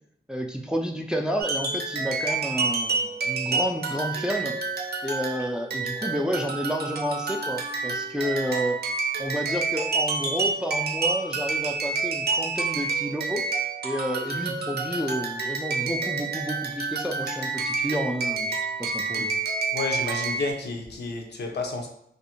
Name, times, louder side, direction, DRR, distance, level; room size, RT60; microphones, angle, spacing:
voice 1, 0.3-4.6 5.0-8.8 9.2-13.4 13.8-19.3, equal, 5° right, 2 dB, 0.3 m, -30 dB
sound 1, 1.4-20.5, right 4 dB, 70° right, 0.5 m, -29 dB
voice 2, 19.7-21.9, left 3 dB, 75° left, 1 dB, 0.6 m, -31 dB
2.5 x 2.0 x 2.8 m, 0.72 s
cardioid pair, 65°, 17 cm